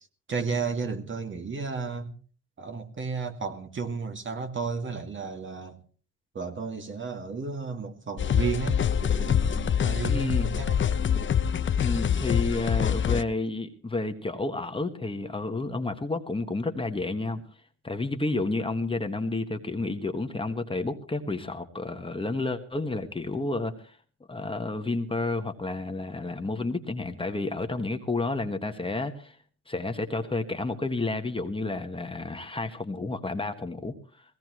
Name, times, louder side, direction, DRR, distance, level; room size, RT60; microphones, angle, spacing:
voice 1, 0.3-2.1 2.6-5.8 6.3-10.8, right 5 dB, 40° right, 6 dB, 2.3 m, -33 dB
sound 1, 8.2-13.2, left 8 dB, 40° left, 0.8 m, -25 dB
voice 2, 10.1-10.5 11.8-17.4 17.8-24.0 24.3-29.3 29.7-33.9, left 2 dB, 15° left, 6 dB, 1.5 m, -30 dB
20.5 x 17.5 x 3.1 m, 0.40 s
cardioid pair, 90°, 30 cm